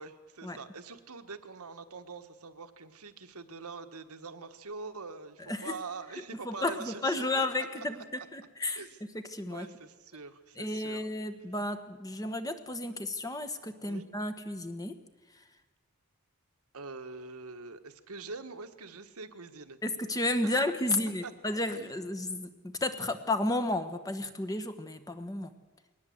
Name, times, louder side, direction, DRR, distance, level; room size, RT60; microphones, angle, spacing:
voice 1, 0.0-7.7 7.9-8.3 8.7-9.0 9.5-11.1 13.8-14.0 16.7-19.8 20.4-20.7 21.2-21.3 21.7-21.9, right 4 dB, 80° right, 8 dB, 1.5 m, -44 dB
voice 2, 6.4-8.0 8.3-8.8 9.3-9.7 10.6-15.0 19.8-25.5, left 2 dB, 15° left, 9 dB, 1.3 m, -32 dB
21.5 x 18.5 x 8.0 m, 1.2 s
head